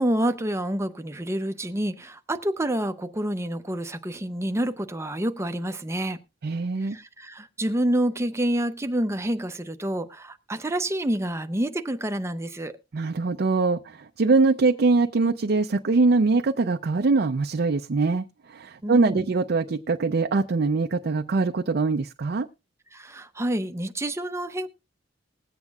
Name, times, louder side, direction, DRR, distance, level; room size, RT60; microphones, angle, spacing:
voice 1, 0.0-6.2 6.8-12.7 18.8-19.3 22.9-24.7, right 1 dB, 15° right, 0.6 m, -28 dB
voice 2, 6.4-7.0 12.9-22.5, right 3 dB, 55° right, 0.5 m, -23 dB
20.5 x 8.1 x 2.3 m
head